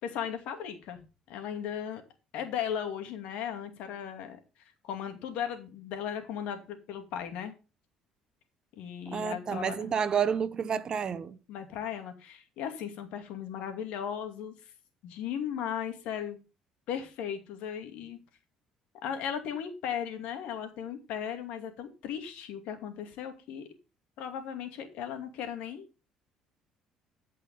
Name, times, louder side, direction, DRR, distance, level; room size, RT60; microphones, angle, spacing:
voice 1, 0.0-1.0 1.3-2.0 2.3-4.4 4.8-7.5 8.8-9.9 11.5-14.5 15.0-16.4 16.9-18.2 19.0-23.7 24.2-25.8, left 8 dB, 80° left, 2.5 m, -36 dB
voice 2, 9.1-11.4, right 7 dB, 40° right, 1.0 m, -30 dB
14.0 x 5.6 x 5.5 m
cardioid pair, 100°, 2 cm